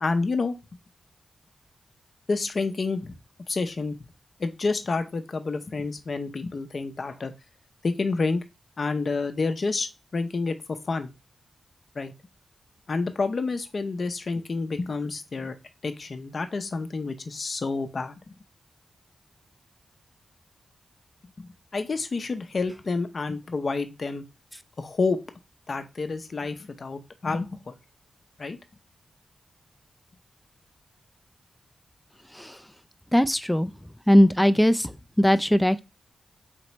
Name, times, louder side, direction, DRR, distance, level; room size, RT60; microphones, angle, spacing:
voice 1, 0.0-0.5 2.3-3.2 3.5-4.0 4.4-7.3 7.8-8.4 8.8-11.1 11.9-12.1 12.9-15.6 15.8-18.1 21.4-24.2 24.8-25.2 25.7-27.7 28.4-28.6, left 3 dB, 55° left, 0.6 m, -29 dB
voice 2, 33.1-33.7 34.1-34.9 35.2-35.8, equal, 5° left, 0.4 m, -19 dB
4.3 x 3.1 x 2.9 m
cardioid pair, 50°, 0 cm